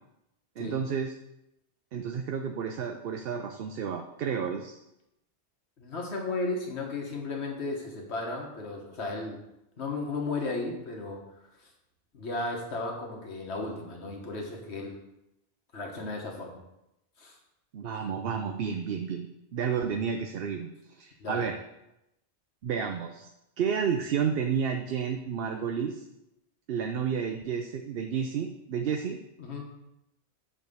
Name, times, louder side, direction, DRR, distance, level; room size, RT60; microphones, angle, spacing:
voice 1, 0.6-1.1 1.9-4.8 17.7-20.7 20.9-21.6 22.6-23.3 23.6-26.0 26.7-29.2, right 7 dB, 65° right, 4 dB, 0.8 m, -31 dB
voice 2, 5.8-9.4 9.8-11.2 12.1-15.0 15.7-16.6 17.2-17.3 21.2-21.4 29.4-29.7, left 3 dB, 90° left, 0 dB, 1.6 m, -34 dB
9.0 x 3.3 x 6.7 m, 0.87 s
omnidirectional pair, 1.1 m